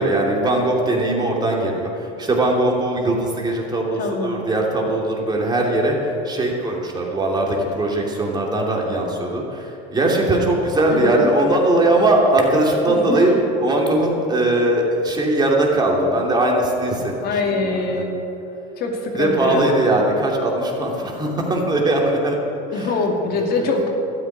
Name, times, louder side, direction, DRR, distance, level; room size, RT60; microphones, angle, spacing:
voice 1, 0.0-6.0 6.2-13.3 13.6-18.0 19.1-22.4 22.7-22.9, right 1 dB, 20° right, -1 dB, 2.9 m, -20 dB
voice 2, 3.9-4.5 10.9-11.3 12.9-13.4 17.2-18.1 18.8-19.9 22.7-23.9, left 3 dB, 45° left, 2 dB, 2.5 m, -24 dB
13.0 x 9.8 x 8.6 m, 2.9 s
supercardioid pair, 115°, 21 cm